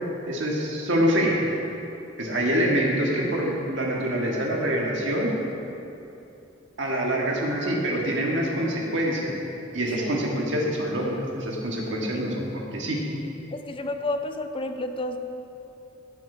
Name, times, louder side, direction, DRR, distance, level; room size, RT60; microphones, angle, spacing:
voice 1, 0.3-1.3 2.2-5.3 6.8-9.3 9.7-13.0, equal, 65° right, -2 dB, 1.7 m, -25 dB
voice 2, 13.5-15.2, left 2 dB, 25° left, 7 dB, 0.5 m, -31 dB
14.0 x 6.2 x 5.0 m, 2.9 s
head